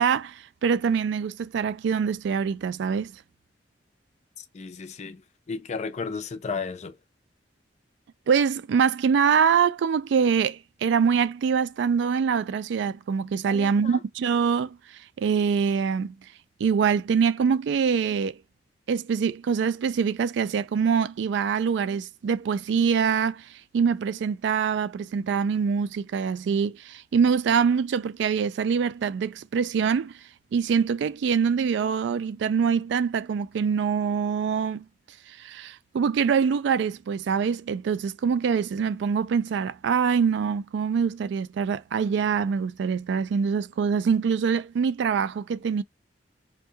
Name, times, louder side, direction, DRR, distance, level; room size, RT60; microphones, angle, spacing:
voice 1, 0.0-3.1 8.3-14.8 15.2-16.1 16.6-18.4 18.9-23.5 23.7-30.1 30.5-34.9 35.3-45.8, right 6 dB, 70° right, 0.3 m, -24 dB
voice 2, 4.4-5.2 5.5-7.0 13.4-14.0, left 5 dB, 40° left, 0.4 m, -34 dB
4.5 x 2.2 x 2.7 m
head